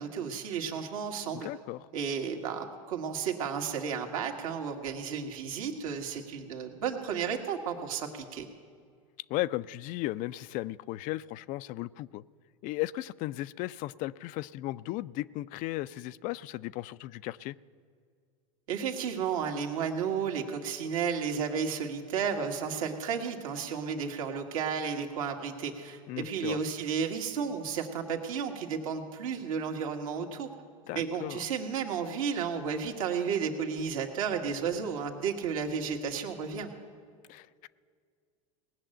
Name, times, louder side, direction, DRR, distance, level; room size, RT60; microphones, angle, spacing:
voice 1, 0.0-1.5 1.9-8.5 18.7-30.5 30.9-36.7, right 6 dB, 75° right, 3 dB, 1.8 m, -33 dB
voice 2, 1.3-1.9 9.3-12.2 12.6-17.6 26.1-26.6 30.9-31.4 37.3-37.7, left 17 dB, 50° left, 17 dB, 0.4 m, -36 dB
18.5 x 6.7 x 8.9 m, 2.1 s
hypercardioid pair, 95°, 18 cm